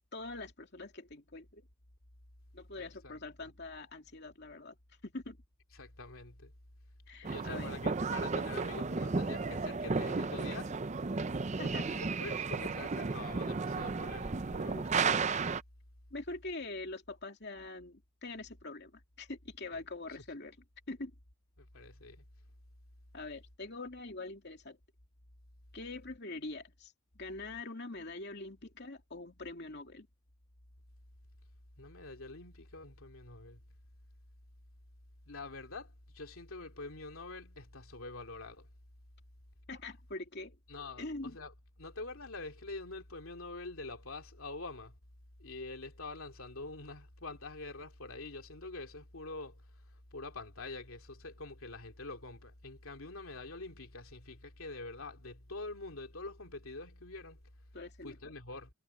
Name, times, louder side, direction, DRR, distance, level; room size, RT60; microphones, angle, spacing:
voice 1, 0.1-1.6 2.5-4.8 5.0-5.4 7.1-7.8 11.6-11.9 16.1-20.6 20.9-21.1 23.1-24.8 25.7-30.1 39.7-40.6 41.0-41.3 57.7-58.3, left 2 dB, 50° left, 2.7 m, -44 dB
voice 2, 2.8-3.5 5.7-6.5 7.2-10.8 11.9-15.1 21.6-22.2 31.8-33.6 35.3-38.7 40.7-41.5 41.8-45.0 45.4-49.7 50.1-57.4 58.0-58.7, left 3 dB, 75° left, 2.7 m, -45 dB
sound 1, 7.2-15.6, right 4 dB, 35° right, 0.5 m, -34 dB
head